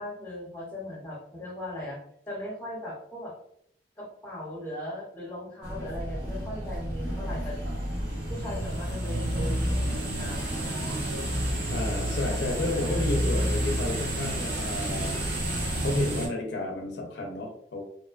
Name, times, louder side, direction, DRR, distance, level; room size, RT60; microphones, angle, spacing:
voice 1, 0.0-2.0 2.3-3.3 4.0-7.6 8.3-10.7 12.5-13.2, left 1 dB, 10° left, -4 dB, 0.8 m, -38 dB
sound 1, 5.6-16.3, right 1 dB, 80° right, 0.9 m, -30 dB
voice 2, 11.7-15.1 15.8-17.8, left 2 dB, 70° left, 2 dB, 0.4 m, -31 dB
2.5 x 2.1 x 2.3 m, 0.68 s
head